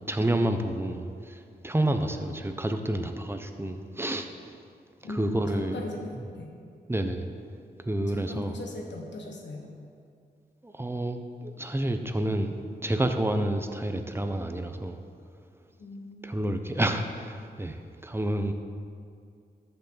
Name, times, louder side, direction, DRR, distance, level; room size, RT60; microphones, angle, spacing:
voice 1, 0.0-4.5 5.1-5.8 6.2-6.3 6.9-7.2 7.8-8.6 10.6-15.0 16.2-18.5, right 1 dB, 15° right, 6 dB, 0.8 m, -29 dB
voice 2, 5.0-6.6 8.1-9.7 15.8-16.4, left 2 dB, 80° left, 1 dB, 1.4 m, -39 dB
14.0 x 5.9 x 4.0 m, 2.3 s
cardioid pair, 65°, 18 cm